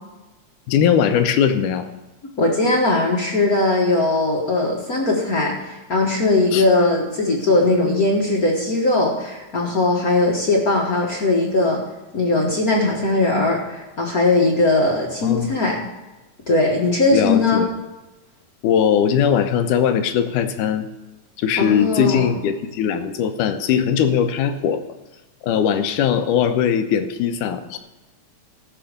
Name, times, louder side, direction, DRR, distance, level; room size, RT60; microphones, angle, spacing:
voice 1, 0.7-1.9 6.5-6.7 15.2-15.7 17.1-17.7 18.6-20.9 21.4-24.8 25.4-27.8, left 8 dB, 85° left, 8 dB, 2.3 m, -20 dB
voice 2, 2.4-11.8 12.1-15.8 16.5-17.7 21.6-22.3, left 2 dB, 45° left, -1 dB, 1.2 m, -19 dB
14.5 x 6.2 x 6.6 m, 1.1 s
omnidirectional pair, 3.7 m